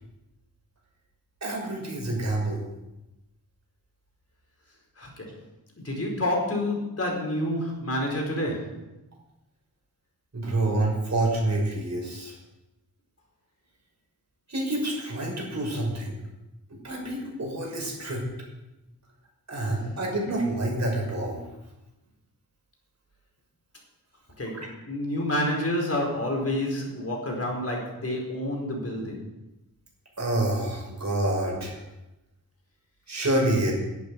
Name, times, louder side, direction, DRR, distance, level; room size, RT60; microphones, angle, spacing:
voice 1, 1.4-2.6 10.3-12.3 14.5-16.2 16.7-18.2 19.5-21.4 30.2-31.8 33.1-33.7, right 1 dB, 50° right, -1 dB, 6.1 m, -27 dB
voice 2, 5.0-5.3 5.8-8.8 24.4-29.2, left 1 dB, 45° left, -1 dB, 4.7 m, -28 dB
11.5 x 8.6 x 9.7 m, 0.97 s
wide cardioid pair, 70°, 35 cm